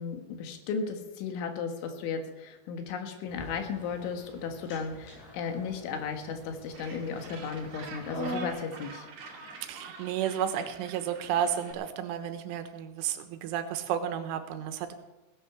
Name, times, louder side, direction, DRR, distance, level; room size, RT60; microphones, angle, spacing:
voice 1, 0.0-9.1, left 5 dB, 75° left, 5 dB, 3.8 m, -35 dB
sound 1, 3.3-8.5, right 1 dB, 60° left, 8.3 m, -43 dB
Gull seagull, 6.7-11.7, right 3 dB, 55° right, 4.5 m, -47 dB
voice 2, 9.6-14.9, right 9 dB, 90° right, 8 dB, 3.6 m, -32 dB
17.5 x 10.5 x 6.1 m, 1.0 s
omnidirectional pair, 5.5 m